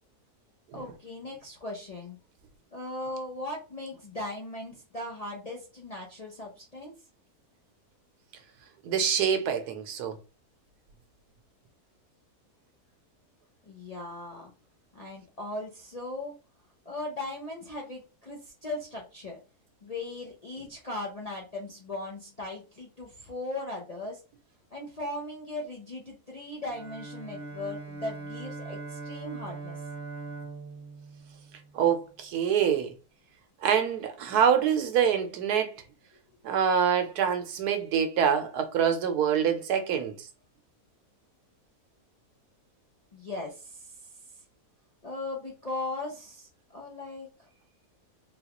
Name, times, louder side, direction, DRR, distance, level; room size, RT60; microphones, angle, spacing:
voice 1, 0.7-2.2 2.7-6.9 13.7-14.5 14.9-16.3 16.9-19.4 19.8-24.2 24.7-29.8 43.1-44.0 45.0-47.5, left 2 dB, 50° left, 0.4 m, -38 dB
voice 2, 8.8-10.2 31.7-32.9 33.6-35.7 36.4-40.3, right 8 dB, 90° right, 1.2 m, -25 dB
Bowed string instrument, 26.6-32.1, right 3 dB, 50° right, 0.8 m, -41 dB
3.8 x 2.3 x 2.9 m
omnidirectional pair, 1.6 m